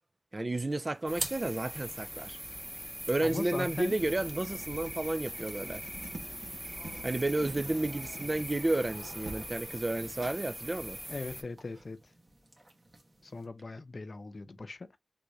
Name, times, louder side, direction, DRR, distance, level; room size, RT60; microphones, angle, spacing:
voice 1, 0.3-2.4 3.1-5.8 7.0-11.0, right 2 dB, 45° right, 0.3 m, -32 dB
sound 1, 0.7-13.5, right 1 dB, 65° right, 1.4 m, -49 dB
sound 2, 1.1-11.4, equal, 10° right, 0.7 m, -42 dB
voice 2, 3.2-3.9 11.1-12.0 13.2-15.0, left 3 dB, 75° left, 0.5 m, -39 dB
Writing, 3.9-9.5, right 3 dB, 85° right, 0.7 m, -47 dB
3.5 x 2.5 x 3.2 m
wide cardioid pair, 50°, 0 cm